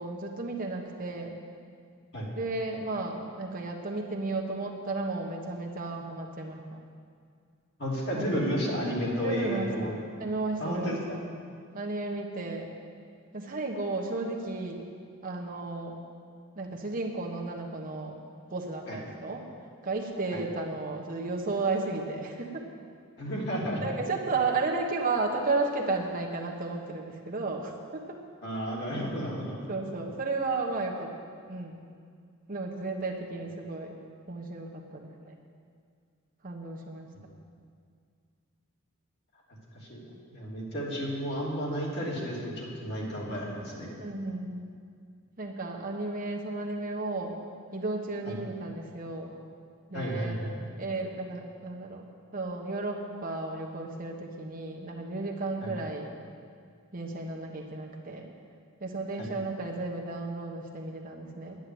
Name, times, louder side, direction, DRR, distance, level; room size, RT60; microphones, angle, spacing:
voice 1, 0.0-1.4 2.3-6.8 8.1-8.4 9.2-11.0 11.7-12.7 13.3-14.9 15.2-16.0 16.6-18.1 18.5-19.4 19.8-22.7 23.8-28.2 29.7-31.1 31.5-31.8 32.5-33.9 34.3-35.3 36.4-37.1 44.0-44.7 45.4-47.3 47.7-49.3 49.9-50.4 50.8-52.0 52.3-56.1 56.9-58.3 58.8-61.6, right 3 dB, 40° right, 0 dB, 1.1 m, -33 dB
voice 2, 7.8-9.9 10.6-11.0 18.9-19.0 20.3-20.4 23.2-23.9 28.4-29.6 39.7-40.0 40.3-44.0 48.3-48.4 49.9-50.5 55.6-55.7 59.2-59.3, equal, 50° left, -5 dB, 3.1 m, -32 dB
10.5 x 9.9 x 7.8 m, 2.2 s
head